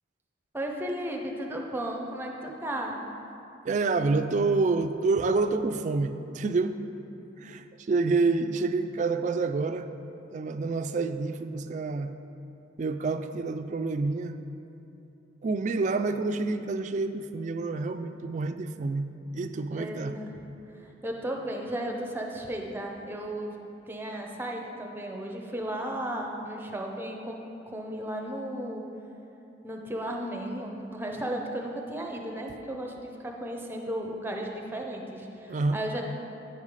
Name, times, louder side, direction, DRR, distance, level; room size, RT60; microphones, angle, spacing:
voice 1, 0.5-3.0 19.7-20.3 20.8-23.5 23.9-27.4 27.7-28.8 29.6-36.0, right 1 dB, 10° right, 1 dB, 0.7 m, -34 dB
voice 2, 3.6-6.8 7.4-9.9 10.3-12.2 12.8-14.4 15.4-20.2 35.5-35.8, right 3 dB, 40° right, 8 dB, 0.3 m, -28 dB
9.6 x 5.5 x 4.8 m, 2.9 s
head